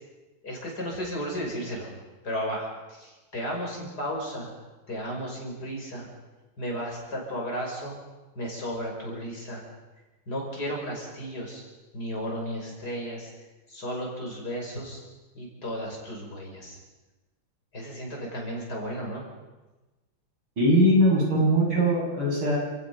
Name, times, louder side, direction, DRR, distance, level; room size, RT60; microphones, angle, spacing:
voice 1, 0.4-1.9 2.2-4.5 4.9-6.1 6.6-8.0 8.3-9.6 10.3-11.6 11.9-13.3 13.7-15.0 15.3-16.8 17.7-19.2, equal, 50° left, -1 dB, 6.3 m, -34 dB
voice 2, 20.6-22.6, equal, 85° right, -3 dB, 7.5 m, -21 dB
30.0 x 17.5 x 5.5 m, 1.1 s
omnidirectional pair, 2.1 m